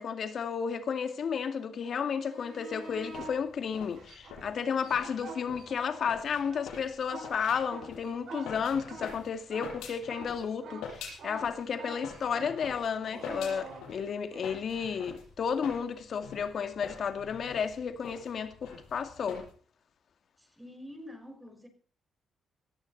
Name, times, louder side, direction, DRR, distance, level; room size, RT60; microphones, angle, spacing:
voice 1, 0.0-19.5, left 6 dB, 55° left, 2.3 m, -32 dB
sound 1, 2.1-3.3 3.9-6.0 6.3-14.5 17.3-17.4, right 3 dB, 65° right, 5.9 m, -46 dB
sound 2, 2.9-10.5 10.8-11.6 12.0-19.5, left 6 dB, 90° left, 6.9 m, -46 dB
voice 2, 20.4-21.7, left 1 dB, 5° right, 5.2 m, -47 dB
18.5 x 14.0 x 4.2 m
cardioid pair, 90°, 0 cm